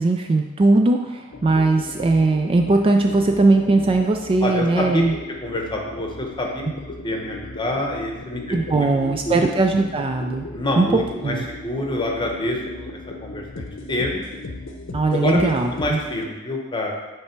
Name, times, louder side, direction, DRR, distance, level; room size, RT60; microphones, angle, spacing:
voice 1, 0.0-5.1 8.5-10.4 10.8-10.9 11.2-11.5 14.9-16.0, right 2 dB, 25° right, 4 dB, 0.3 m, -19 dB
sound 1, 1.3-16.3, left 2 dB, 65° left, 0.7 m, -37 dB
voice 2, 4.4-5.0 5.4-6.6 7.0-9.6 10.5-14.2 15.1-16.9, left 1 dB, 25° left, 0 dB, 1.0 m, -27 dB
8.6 x 3.3 x 4.5 m, 1.2 s
head